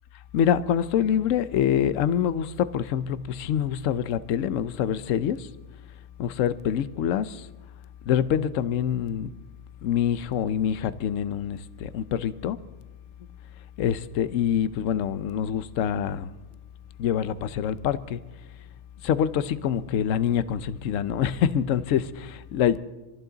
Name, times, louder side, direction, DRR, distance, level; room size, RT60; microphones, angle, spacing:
voice 1, 0.3-5.5 6.2-7.5 8.1-9.3 9.8-12.6 13.8-16.3 17.0-18.2 19.0-22.8, left 9 dB, 70° left, 1.0 m, -25 dB
26.0 x 14.5 x 3.9 m
omnidirectional pair, 1.5 m